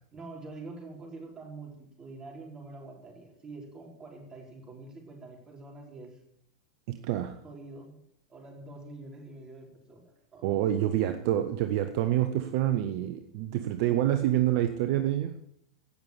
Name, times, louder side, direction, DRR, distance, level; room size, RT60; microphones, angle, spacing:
voice 1, 0.1-6.2 7.4-8.0 8.3-10.9, right 3 dB, 25° right, 1 dB, 5.0 m, -46 dB
voice 2, 6.9-7.4 10.4-15.4, right 12 dB, 60° right, 9 dB, 1.1 m, -27 dB
17.0 x 7.0 x 8.5 m, 0.72 s
hypercardioid pair, 95°, 3 cm